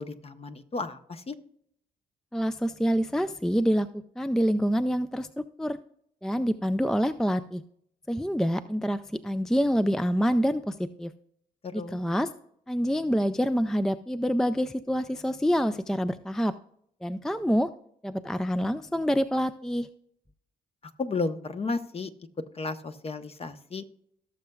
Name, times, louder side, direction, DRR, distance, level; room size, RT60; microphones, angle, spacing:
voice 1, 0.0-1.4 11.6-12.0 21.0-22.1 22.5-23.8, left 3 dB, 35° left, 9 dB, 0.9 m, -33 dB
voice 2, 2.3-3.9 4.2-5.8 6.2-7.6 8.1-11.1 11.7-12.3 12.7-16.5 17.0-17.7 18.0-19.9, equal, 5° left, 12 dB, 0.4 m, -26 dB
17.0 x 6.7 x 2.3 m, 0.68 s
cardioid pair, 85°, 17 cm